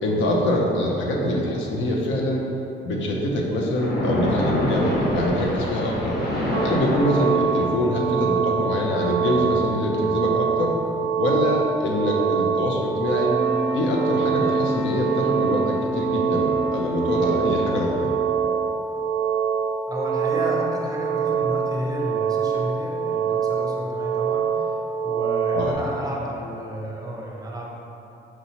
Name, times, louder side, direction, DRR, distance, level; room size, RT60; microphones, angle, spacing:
voice 1, 0.0-2.4 2.8-6.2 6.6-10.7 11.1-13.3 13.7-18.1 25.5-25.8, left 1 dB, 75° left, -2 dB, 0.6 m, -24 dB
Splash splatter, 3.7-7.8, equal, 50° left, 1.0 m, -25 dB
sound 1, 6.5-25.7, right 7 dB, 70° right, 0.4 m, -25 dB
sound 2, 13.2-18.7, equal, 30° left, 0.4 m, -30 dB
voice 2, 19.9-27.7, equal, 20° right, -3 dB, 0.6 m, -32 dB
4.5 x 2.7 x 2.9 m, 2.9 s
cardioid pair, 90°, 20 cm